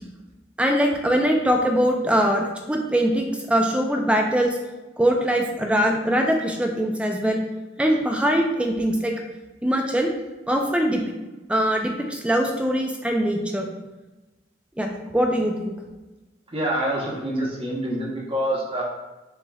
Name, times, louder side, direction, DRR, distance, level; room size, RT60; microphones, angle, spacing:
voice 1, 0.6-4.6 5.0-7.4 7.8-9.1 9.6-10.1 10.5-11.1 11.5-13.7 14.8-15.8, equal, 5° right, 2 dB, 0.4 m, -22 dB
voice 2, 16.5-18.8, right 1 dB, 30° right, -3 dB, 0.9 m, -26 dB
7.0 x 3.0 x 2.3 m, 1.1 s
head